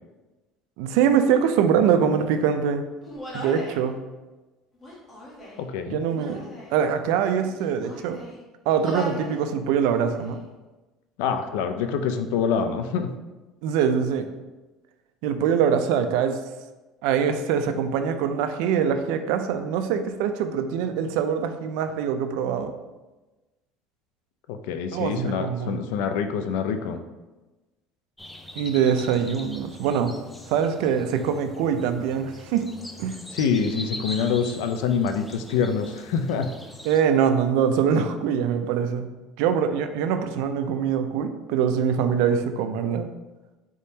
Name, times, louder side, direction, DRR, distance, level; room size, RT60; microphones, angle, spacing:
voice 1, 0.8-2.9 3.3-4.0 5.9-6.4 6.7-8.2 8.7-10.4 13.6-14.3 15.2-16.4 17.0-22.7 24.9-25.8 28.6-30.1 30.5-32.6 33.0-33.2 36.8-39.1 39.4-43.1, right 7 dB, 80° right, 8 dB, 0.4 m, -23 dB
Human voice, 3.0-3.8 4.7-5.7 6.1-6.8 7.4-8.4 8.8-9.4 9.7-10.4, left 1 dB, 25° left, 1.1 m, -38 dB
voice 2, 5.6-6.0 11.2-13.1 24.5-27.0 33.3-36.5, left 6 dB, 85° left, 8 dB, 0.4 m, -26 dB
sound 1, 28.2-37.0, left 1 dB, 10° left, 0.3 m, -42 dB
4.1 x 3.6 x 2.8 m, 1.1 s
cardioid pair, 130°, 0 cm